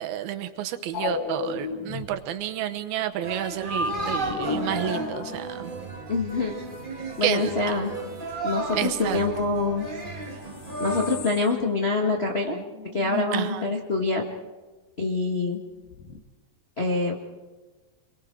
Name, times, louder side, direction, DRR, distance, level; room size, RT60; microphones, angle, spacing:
voice 1, 0.0-5.7 7.2-7.5 8.7-9.2 12.5-12.6 13.3-13.6, right 11 dB, 85° right, 8 dB, 3.0 m, -30 dB
sound 1, 0.9-2.2 3.7-5.9 10.0-10.1 10.3-11.7 11.9-12.0 12.3-12.4 12.7-13.7 15.9-16.2, left 6 dB, 75° left, 3.0 m, -34 dB
sound 2, 3.2-11.2, right 2 dB, 70° right, 0.4 m, -33 dB
voice 2, 6.1-6.5 7.2-7.9 8.4-9.9 10.8-12.6 12.9-14.2 15.0-15.6 16.8-17.1, left 3 dB, 60° left, 0 dB, 0.6 m, -25 dB
28.0 x 23.0 x 4.7 m, 1.3 s
omnidirectional pair, 4.2 m